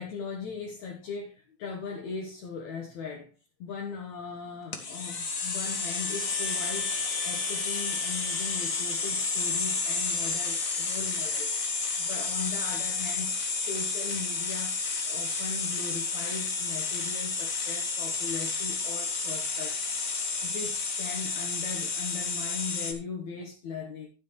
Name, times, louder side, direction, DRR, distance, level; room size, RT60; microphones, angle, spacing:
voice 1, 0.0-3.3 3.6-19.8 20.4-24.1, left 5 dB, 65° left, 0 dB, 2.6 m, -39 dB
sound 1, 4.7-22.9, left 4 dB, 45° left, 1.1 m, -31 dB
11.5 x 9.5 x 3.1 m, 0.31 s
omnidirectional pair, 3.5 m